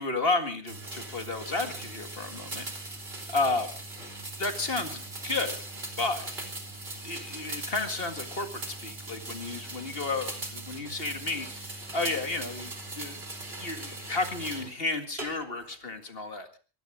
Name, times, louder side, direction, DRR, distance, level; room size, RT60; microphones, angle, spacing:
voice 1, 0.0-2.7 3.3-3.7 4.4-5.6 6.0-6.3 7.0-13.2 13.6-16.6, left 3 dB, 35° left, 7 dB, 2.1 m, -32 dB
sound 1, 0.7-14.7 15.2-15.7, right 2 dB, 40° right, 3.5 m, -39 dB
23.0 x 17.0 x 3.7 m, 0.35 s
omnidirectional pair, 1.7 m